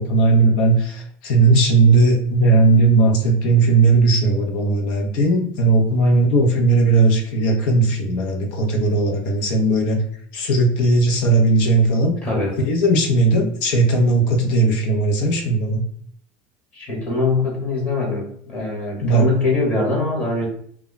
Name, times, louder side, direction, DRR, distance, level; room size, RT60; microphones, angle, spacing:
voice 1, 0.0-10.0 10.3-12.1 12.6-15.8 19.0-19.3, right 3 dB, 75° left, 2 dB, 0.7 m, -17 dB
voice 2, 12.2-12.6 16.7-20.5, left 3 dB, 25° left, -3 dB, 1.0 m, -22 dB
2.3 x 2.1 x 3.8 m, 0.63 s
cardioid pair, 150°, 5 cm